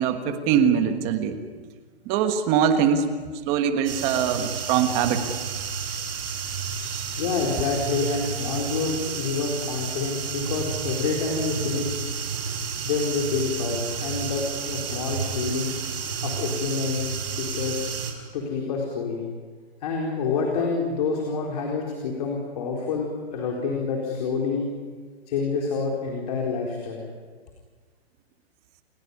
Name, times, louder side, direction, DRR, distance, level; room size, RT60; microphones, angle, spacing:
voice 1, 0.0-1.4 2.0-3.1 3.4-5.2 6.9-7.0, right 8 dB, 20° right, 8 dB, 1.4 m, -22 dB
sound 1, 3.8-18.1, right 6 dB, 60° right, 5.3 m, -31 dB
voice 2, 7.2-12.0 12.8-15.7 16.2-17.1 17.4-17.9 18.3-19.2 19.8-24.7 25.3-27.0, left 4 dB, 35° left, 0 dB, 4.2 m, -27 dB
29.5 x 17.0 x 9.7 m, 1.5 s
hypercardioid pair, 170°, 32 cm